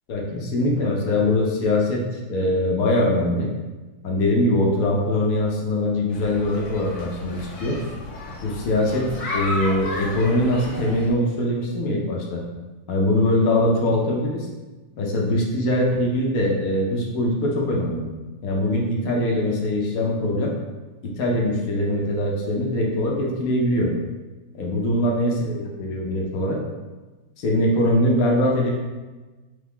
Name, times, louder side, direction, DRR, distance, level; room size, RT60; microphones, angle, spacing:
voice 1, 0.1-3.5 4.0-7.7 8.4-9.1 9.3-12.4 12.9-14.5 15.0-18.1 18.4-20.5 21.0-23.9 24.5-26.6 27.4-28.7, left 1 dB, 60° left, -1 dB, 1.0 m, -22 dB
sound 1, 6.1-11.1, left 2 dB, 90° left, 1.7 m, -33 dB
3.6 x 3.2 x 3.5 m, 1.2 s
omnidirectional pair, 2.1 m